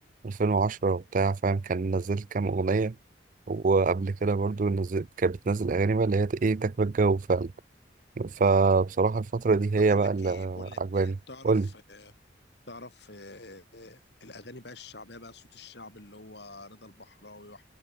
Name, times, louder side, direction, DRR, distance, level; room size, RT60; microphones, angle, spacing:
voice 1, 0.2-2.9 3.5-7.5 8.2-11.2 11.4-11.7, right 4 dB, 45° right, 0.4 m, -25 dB
voice 2, 9.8-12.1 12.7-17.7, left 2 dB, 60° left, 4.2 m, -47 dB
head